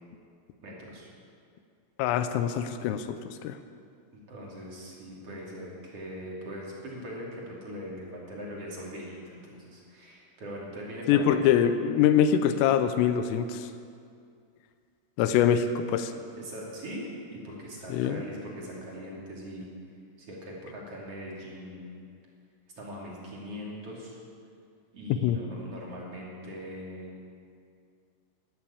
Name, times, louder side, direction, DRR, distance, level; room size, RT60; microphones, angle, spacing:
voice 1, 0.6-1.1 4.1-11.4 15.2-15.5 16.4-19.7 20.2-22.0 22.8-24.2 24.9-27.1, equal, 40° right, -4 dB, 2.8 m, -41 dB
voice 2, 2.0-3.6 11.1-13.7 15.2-16.1 17.9-18.2 25.2-25.4, left 9 dB, 85° left, 9 dB, 3.3 m, -24 dB
12.5 x 12.5 x 8.5 m, 2.3 s
omnidirectional pair, 5.8 m